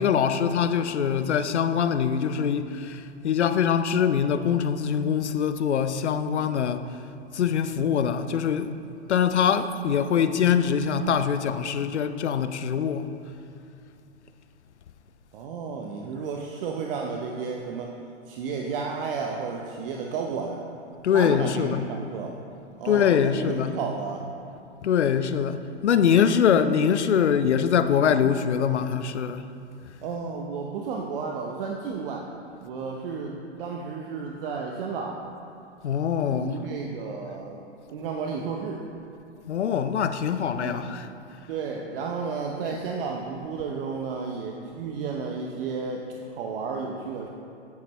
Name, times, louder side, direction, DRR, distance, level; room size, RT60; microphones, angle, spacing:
voice 1, 0.0-6.9 7.3-8.7 9.1-13.1 21.0-21.8 22.9-23.7 24.8-29.4 35.8-36.5 39.5-41.1, left 7 dB, 85° left, 0.5 m, -23 dB
voice 2, 15.3-17.9 18.3-20.6 21.1-22.4 22.8-24.2 30.0-32.3 32.6-35.2 36.3-37.6 37.9-38.8 40.6-40.9 41.5-47.3, right 5 dB, 55° right, 0.8 m, -32 dB
9.5 x 8.5 x 3.1 m
figure-of-eight pair, 105°, 34 cm